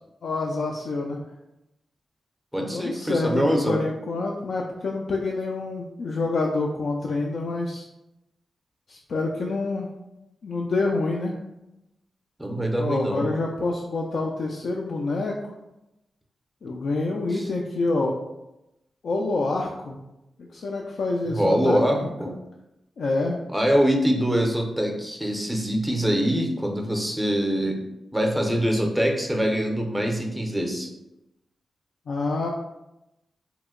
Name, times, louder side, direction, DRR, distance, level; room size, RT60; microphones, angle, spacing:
voice 1, 0.2-1.2 2.6-7.9 8.9-9.9 10.4-11.4 12.8-15.4 16.6-18.2 19.0-20.0 20.4-21.8 23.0-23.4 32.1-32.5, left 3 dB, 70° left, -1 dB, 0.3 m, -27 dB
voice 2, 2.5-3.8 12.4-13.3 17.3-17.5 21.2-22.3 23.5-27.8 28.1-30.9, equal, 5° right, 2 dB, 0.5 m, -24 dB
2.8 x 2.1 x 3.6 m, 0.91 s
cardioid pair, 95°, 0 cm